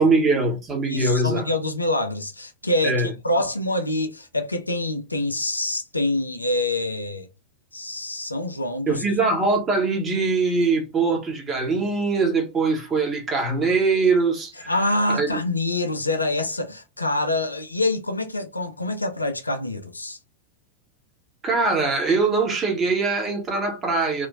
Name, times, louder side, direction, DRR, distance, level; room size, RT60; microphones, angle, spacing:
voice 1, 0.0-1.5 2.8-3.1 8.9-14.7 15.1-15.3 21.4-24.3, right 3 dB, 20° right, 1.0 m, -22 dB
voice 2, 0.8-7.3 7.7-9.0 14.7-20.2, left 2 dB, 85° left, 0.4 m, -26 dB
2.8 x 2.4 x 2.6 m
figure-of-eight pair, 90°, 0 cm